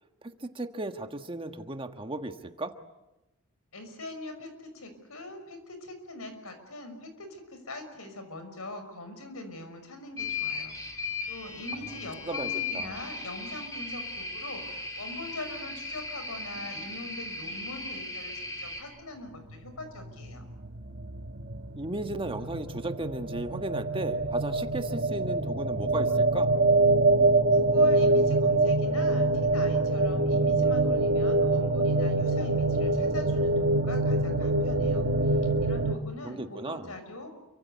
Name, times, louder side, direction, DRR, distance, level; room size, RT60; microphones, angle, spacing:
voice 1, 0.5-2.7 12.2-13.0 21.7-26.5 36.2-37.0, right 2 dB, 25° right, 7 dB, 1.5 m, -35 dB
voice 2, 3.7-20.5 27.5-37.3, left 2 dB, 70° left, 8 dB, 6.0 m, -43 dB
sound 1, 10.2-18.8, left 4 dB, 15° left, 5.0 m, -37 dB
sound 2, 19.5-35.9, right 2 dB, 50° right, 1.4 m, -25 dB
29.0 x 24.5 x 8.3 m, 0.97 s
head